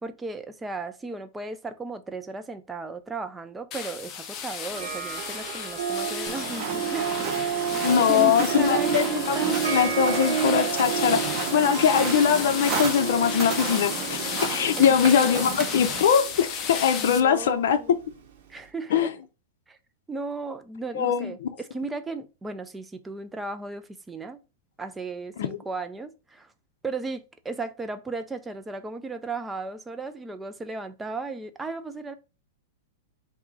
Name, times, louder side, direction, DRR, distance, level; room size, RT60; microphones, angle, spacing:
voice 1, 0.0-9.7 14.8-15.0 17.0-18.0 18.5-19.1 19.7-19.8 20.1-24.4 24.8-26.5 26.8-32.1, right 3 dB, 10° right, 0.4 m, -35 dB
sound 1, 3.7-17.2, left 7 dB, 30° left, 0.6 m, -34 dB
Harp, 4.7-18.3, right 7 dB, 55° right, 1.4 m, -31 dB
sound 2, 6.3-16.0, right 4 dB, 30° right, 1.2 m, -34 dB
voice 2, 7.8-9.4 9.7-11.2 11.5-14.2 14.5-17.8 18.9-19.1 20.9-21.3 25.4-25.6, left 8 dB, 70° left, 0.6 m, -22 dB
3.7 x 2.7 x 4.6 m
hypercardioid pair, 145°, 0 cm